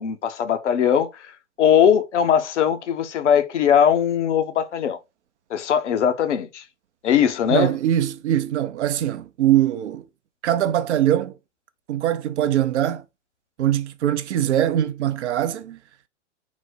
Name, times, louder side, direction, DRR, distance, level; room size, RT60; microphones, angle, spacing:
voice 1, 0.0-1.3 1.6-5.0 5.5-6.6 7.0-7.8, left 8 dB, 70° left, 0.7 m, -20 dB
voice 2, 7.5-10.0 10.4-11.3 11.9-13.0 13.6-15.8, right 11 dB, 70° right, 0.5 m, -22 dB
3.9 x 2.0 x 4.3 m
figure-of-eight pair, 105°, 36 cm